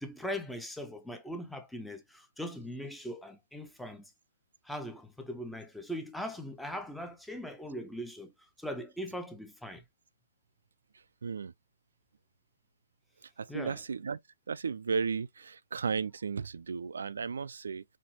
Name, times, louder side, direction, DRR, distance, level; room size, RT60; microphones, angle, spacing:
voice 1, 0.0-4.1 4.6-9.8 13.5-13.8, equal, ahead, 0.6 m, -40 dB
voice 2, 11.2-11.5 13.2-14.2 14.5-17.8, right 5 dB, 75° right, 0.3 m, -34 dB
4.3 x 2.7 x 2.7 m
hypercardioid pair, 150°, 0 cm